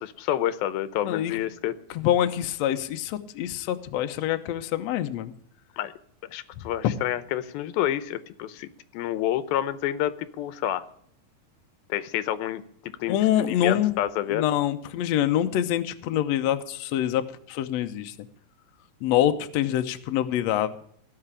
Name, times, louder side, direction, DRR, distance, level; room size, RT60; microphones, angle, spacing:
voice 1, 0.0-1.7 5.8-5.9 6.3-10.8 11.9-13.2 13.5-14.4, left 12 dB, 90° left, 15 dB, 2.6 m, -29 dB
voice 2, 1.0-1.4 1.9-5.3 6.8-6.9 13.1-14.0 14.3-17.2 17.5-18.1 19.0-20.7, left 11 dB, 75° left, 8 dB, 1.6 m, -25 dB
17.0 x 5.9 x 9.9 m, 0.63 s
omnidirectional pair, 4.1 m